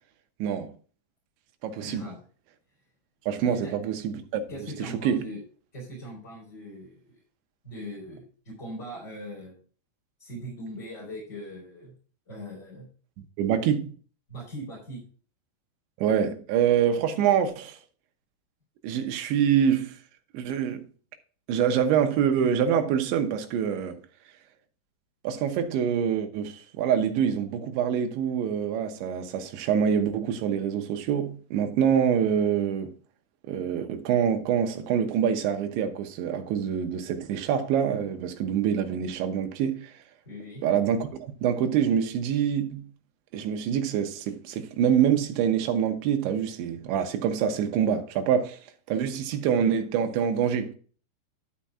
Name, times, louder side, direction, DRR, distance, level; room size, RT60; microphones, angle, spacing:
voice 1, 0.4-0.7 1.6-2.1 3.3-4.4 4.8-5.3 13.4-14.0 16.0-17.8 18.8-20.0 20.3-20.9 21.5-24.0 25.3-32.9 33.5-39.9 40.6-42.9 43.3-48.6 48.9-50.8, right 8 dB, 85° right, 3.5 m, -25 dB
voice 2, 1.8-2.2 3.4-3.7 4.5-5.4 5.7-7.2 7.6-9.6 10.2-11.9 12.3-12.9 14.3-15.0 40.2-40.6, equal, 15° left, 4.0 m, -40 dB
12.5 x 5.9 x 3.6 m
omnidirectional pair, 5.1 m